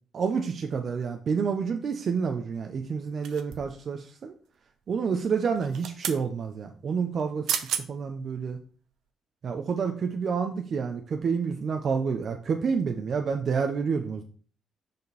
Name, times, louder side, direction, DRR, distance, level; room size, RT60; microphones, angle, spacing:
voice 1, 0.1-4.3 4.9-8.6 9.4-14.2, right 5 dB, 55° right, 5 dB, 0.7 m, -29 dB
sound 1, 3.2-3.8 5.5-6.2 7.2-7.3 7.5-7.9 8.4-8.5, right 9 dB, 80° right, 0.8 m, -32 dB
6.7 x 5.2 x 4.2 m, 0.41 s
cardioid pair, 90°, 0 cm